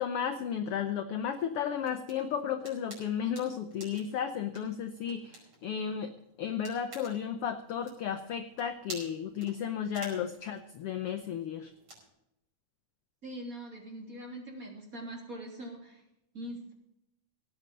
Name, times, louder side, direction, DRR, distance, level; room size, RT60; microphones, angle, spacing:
voice 1, 0.0-6.1 6.4-11.7, left 8 dB, 75° left, 8 dB, 1.3 m, -34 dB
sound 1, 1.4-12.1, right 2 dB, 50° right, 6.2 m, -52 dB
voice 2, 13.2-16.0 16.3-16.7, right 1 dB, 25° right, 0 dB, 3.4 m, -42 dB
17.5 x 9.2 x 5.3 m, 0.82 s
omnidirectional pair, 3.6 m